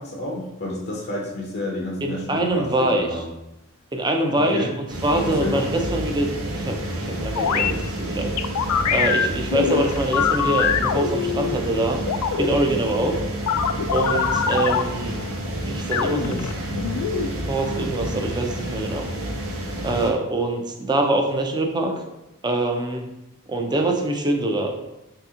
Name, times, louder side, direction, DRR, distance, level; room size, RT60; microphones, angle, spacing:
voice 1, 0.0-3.3 4.4-4.7 5.2-5.7, left 1 dB, 50° left, -2 dB, 0.6 m, -30 dB
voice 2, 2.0-3.1 3.9-4.7 5.0-6.3 6.5-8.3 8.9-12.0 12.4-13.2 13.9-15.2 15.6-16.5 17.5-19.1 19.8-22.0 22.4-23.0 23.5-24.7, right 1 dB, 20° right, 3 dB, 0.4 m, -24 dB
sound 1, 4.9-20.1, right 1 dB, 65° right, 0.8 m, -30 dB
sound 2, 7.4-7.7 8.4-11.6 12.1-12.5 13.5-14.8 15.9-17.3, left 7 dB, 90° left, 0.3 m, -23 dB
3.4 x 2.8 x 3.6 m, 0.92 s
head